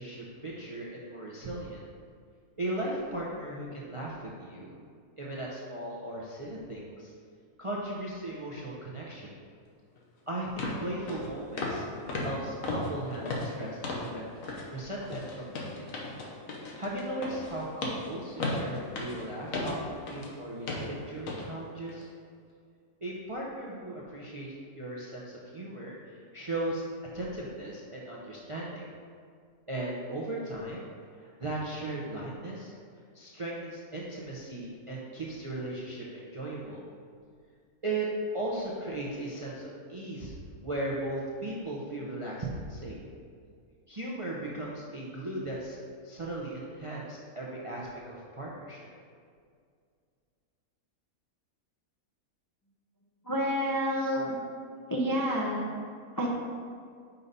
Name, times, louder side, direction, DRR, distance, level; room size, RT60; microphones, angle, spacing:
voice 1, 0.0-1.8 2.6-4.8 5.2-7.1 7.6-9.3 10.3-15.9 16.8-22.1 23.0-26.8 27.1-28.8 29.7-30.9 31.2-32.7 33.1-36.8 37.8-38.1 38.3-40.3 40.6-43.0 43.9-48.9, right 1 dB, 35° right, -4 dB, 0.5 m, -37 dB
sound 1, 10.0-10.1 10.6-10.8 11.1-11.3 11.6-11.8 12.1-14.1 14.4-14.7 15.0-20.3 20.7-20.9 21.3-21.4 21.9-22.0, left 2 dB, 70° left, 1.3 m, -35 dB
voice 2, 53.2-54.4 54.9-55.7 56.2-56.3, equal, 25° left, -4 dB, 0.4 m, -29 dB
5.6 x 5.3 x 4.1 m, 2.2 s
omnidirectional pair, 1.5 m